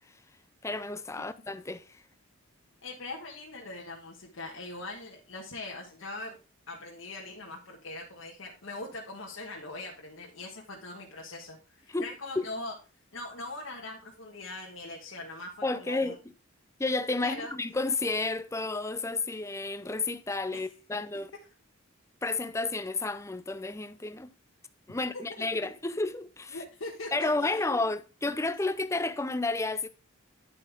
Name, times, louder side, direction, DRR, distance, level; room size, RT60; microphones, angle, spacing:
voice 1, 0.6-2.0 11.9-12.1 12.4-12.5 15.6-16.2 16.8-21.3 22.2-24.3 24.9-26.6 27.1-29.9, left 3 dB, 15° left, 0.5 m, -31 dB
voice 2, 2.8-6.4 6.7-12.7 13.1-16.2 17.2-17.5 20.5-20.7 25.1-25.4 26.5-27.8, left 2 dB, 70° left, 1.4 m, -41 dB
9.9 x 7.4 x 3.5 m
head